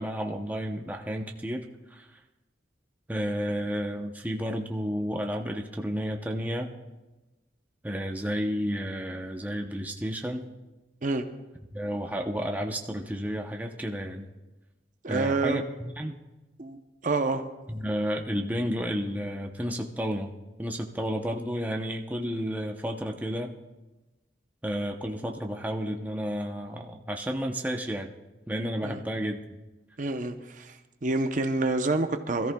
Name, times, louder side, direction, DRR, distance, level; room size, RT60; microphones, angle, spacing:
voice 1, 0.0-1.7 1.9-2.1 3.1-6.7 7.8-10.5 11.7-14.3 15.1-16.2 17.7-20.3 20.6-23.5 24.6-28.2 28.5-29.6, equal, 10° right, 2 dB, 0.7 m, -31 dB
voice 2, 15.0-15.6 16.6-16.8 17.0-17.4 28.8-29.0 30.0-32.5, right 3 dB, 45° right, 7 dB, 0.7 m, -28 dB
24.5 x 14.0 x 2.3 m, 1.1 s
head